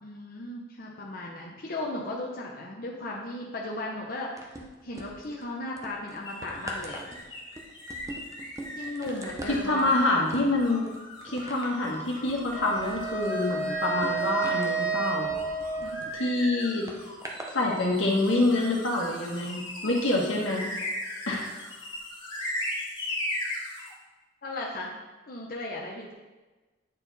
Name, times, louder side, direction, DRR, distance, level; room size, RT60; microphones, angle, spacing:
voice 1, 0.0-4.6 4.8-7.0 8.8-10.0 15.8-16.1 24.4-24.9 25.3-26.1, left 2 dB, 50° left, -2 dB, 0.8 m, -36 dB
sound 1, 4.4-5.4 5.8-16.1 16.9-17.6 18.3-18.4, right 1 dB, 15° right, 0.7 m, -42 dB
sound 2, 6.2-23.9, left 1 dB, 25° left, 1.6 m, -39 dB
voice 2, 9.5-10.9 11.2-15.3 16.2-16.8 17.5-20.7 21.3-21.5, left 2 dB, 80° left, -1 dB, 1.4 m, -26 dB
Wind instrument woodwind instrument, 12.5-16.7, right 4 dB, 70° right, 1.3 m, -31 dB
9.0 x 4.1 x 4.1 m, 1.2 s
head